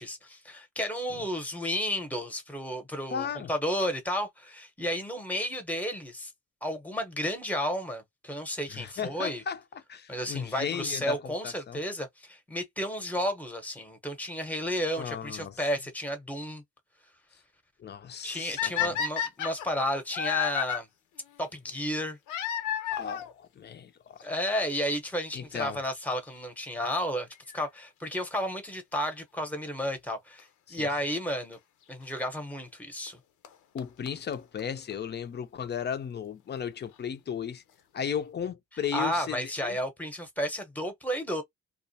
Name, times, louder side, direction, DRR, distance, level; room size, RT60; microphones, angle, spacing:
voice 1, 0.0-6.3 6.6-9.4 10.1-16.6 18.2-20.9 21.4-22.2 24.2-27.3 27.5-31.6 31.9-33.2 38.9-41.4, equal, 5° left, 0.8 m, -32 dB
voice 2, 3.1-3.5 8.7-9.6 9.9-11.8 14.9-15.6 17.8-19.0 22.9-24.2 25.3-25.8 30.7-30.9 33.7-37.6 37.9-39.8, left 8 dB, 35° left, 0.5 m, -35 dB
sound 1, 18.6-20.8 22.3-23.3 24.3-24.4 25.0-25.1 25.3-25.4 27.3-27.6 30.4-30.5 31.5-31.6 33.1-33.2 33.4-33.5 33.8-33.9 34.1-34.2 34.3-34.4 34.6-34.7 34.9-35.0, left 9 dB, 85° left, 0.6 m, -30 dB
2.4 x 2.1 x 2.7 m
cardioid pair, 90°, 30 cm